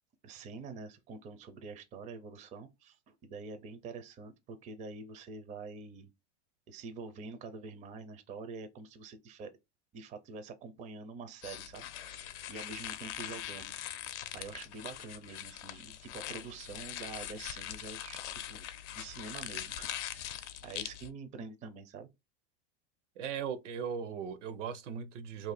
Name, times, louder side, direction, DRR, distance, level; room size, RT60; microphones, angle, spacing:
voice 1, 0.2-6.1 6.7-9.5 9.9-13.7 14.3-18.2 18.5-18.7 18.9-22.1, right 4 dB, 20° right, 0.4 m, -46 dB
sound 1, 11.4-21.1, left 11 dB, 70° left, 0.6 m, -42 dB
voice 2, 23.2-25.5, right 7 dB, 80° right, 0.8 m, -38 dB
2.6 x 2.5 x 4.0 m
supercardioid pair, 130°, 36 cm